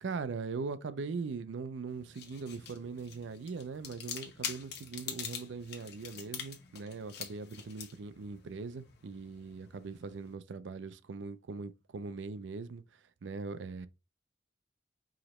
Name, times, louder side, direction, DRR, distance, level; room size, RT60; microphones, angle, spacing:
voice 1, 0.0-12.8 13.2-13.9, right 4 dB, 65° right, 0.4 m, -40 dB
sound 1, 1.9-10.3, left 8 dB, 60° left, 0.9 m, -45 dB
4.9 x 3.0 x 3.0 m
head